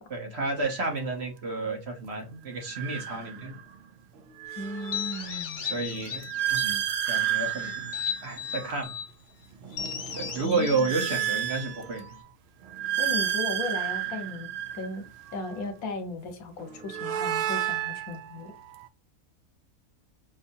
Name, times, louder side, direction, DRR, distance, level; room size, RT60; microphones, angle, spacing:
voice 1, 0.1-3.6 5.6-6.3 6.5-6.8 7.1-7.9 8.2-9.0 10.2-12.1, right 3 dB, 50° right, 1.2 m, -31 dB
sound 1, 0.6-0.9 2.5-3.7 4.2-9.0 9.5-12.2 12.6-15.6 16.6-18.9, right 11 dB, 65° right, 0.6 m, -32 dB
voice 2, 4.6-5.7 10.4-10.9 13.0-14.5 14.7-15.0 15.3-18.5, left 2 dB, 70° left, 1.3 m, -36 dB
sound 2, 4.7-6.8 7.2-9.1 9.7-12.2, left 7 dB, 50° left, 0.6 m, -37 dB
5.4 x 2.7 x 2.7 m
omnidirectional pair, 1.6 m